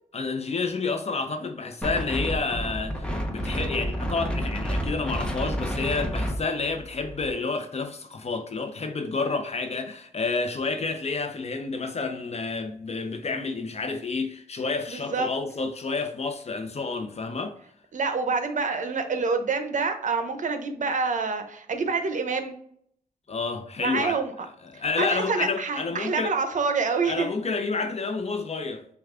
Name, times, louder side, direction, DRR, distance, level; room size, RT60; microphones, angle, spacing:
voice 1, 0.1-17.6 23.3-24.2 24.6-26.3 27.0-28.8, left 4 dB, 45° left, 0.7 m, -29 dB
Wind, 1.8-7.3, equal, 5° left, 0.9 m, -30 dB
voice 2, 14.9-15.3 17.9-22.5 23.8-24.3 25.0-27.3, right 4 dB, 60° right, 0.7 m, -27 dB
6.4 x 2.4 x 2.4 m
cardioid pair, 70°, 15 cm